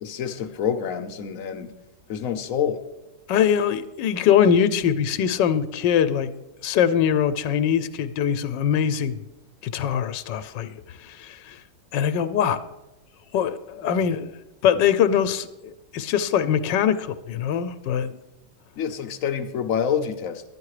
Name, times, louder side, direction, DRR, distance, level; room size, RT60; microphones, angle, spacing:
voice 1, 0.0-1.7 2.1-2.8 18.8-20.4, left 8 dB, 55° left, 7 dB, 1.0 m, -27 dB
voice 2, 3.3-6.3 6.6-9.2 9.6-11.6 11.9-12.6 13.3-14.3 14.6-18.2, left 8 dB, 80° left, 12 dB, 1.3 m, -22 dB
11.5 x 9.7 x 4.8 m, 0.99 s
omnidirectional pair, 1.9 m